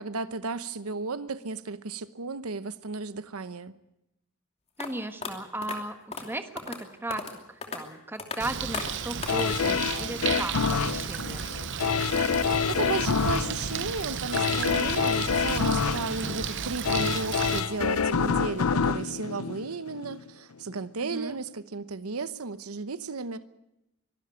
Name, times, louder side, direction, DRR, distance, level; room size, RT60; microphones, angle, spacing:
voice 1, 0.0-3.7 12.2-23.4, right 4 dB, 80° right, 0.9 m, -34 dB
sound 1, 4.8-4.9 5.2-5.3 5.6-5.8 6.1-6.3 6.6-6.8 7.1-7.4 7.6-7.8 8.2-8.4 8.7-8.9 9.2-9.5, left 4 dB, 30° left, 2.8 m, -35 dB
voice 2, 4.8-11.5 21.0-21.4, right 1 dB, 10° right, 1.3 m, -36 dB
Bird, 8.4-17.6, right 7 dB, 55° right, 0.8 m, -33 dB
sound 2, 9.3-20.2 20.7-20.8, left 6 dB, 80° left, 0.7 m, -27 dB
24.0 x 13.0 x 9.3 m
head